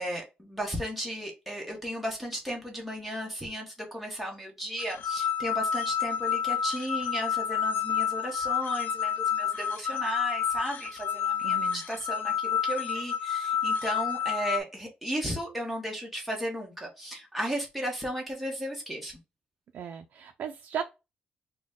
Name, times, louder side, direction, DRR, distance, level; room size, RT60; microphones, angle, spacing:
voice 1, 0.0-19.2, equal, ahead, 1.1 m, -35 dB
sound 1, 4.8-14.6, left 8 dB, 80° left, 0.3 m, -29 dB
voice 2, 11.4-11.8 19.7-20.8, right 8 dB, 70° right, 0.4 m, -36 dB
4.0 x 2.1 x 3.6 m
wide cardioid pair, 180°, 3 cm